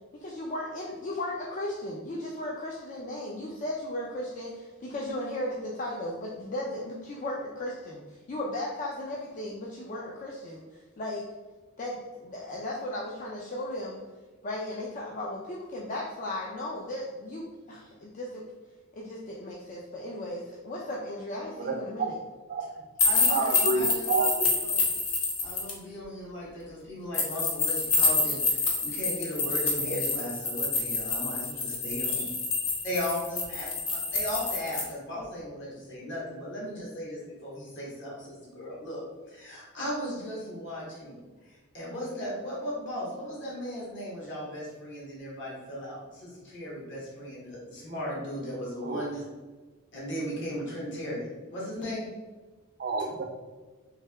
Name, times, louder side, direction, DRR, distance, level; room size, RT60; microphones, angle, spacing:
voice 1, 0.1-11.3 11.8-14.0 14.4-18.4 18.9-22.2, left 1 dB, 35° left, -3 dB, 0.4 m, -36 dB
voice 2, 21.6-22.1 22.5-22.7 23.3-24.5 48.8-49.1 52.8-53.2, right 3 dB, 45° right, 3 dB, 0.4 m, -29 dB
sound 1, 23.0-25.7 27.1-34.8, left 3 dB, 75° left, 0.8 m, -27 dB
voice 3, 23.0-24.1 24.6-24.8 25.4-32.2 32.8-33.7 34.1-49.2 49.9-51.3 51.5-52.1, equal, 55° left, -5 dB, 1.2 m, -36 dB
3.3 x 2.7 x 3.3 m, 1.3 s
head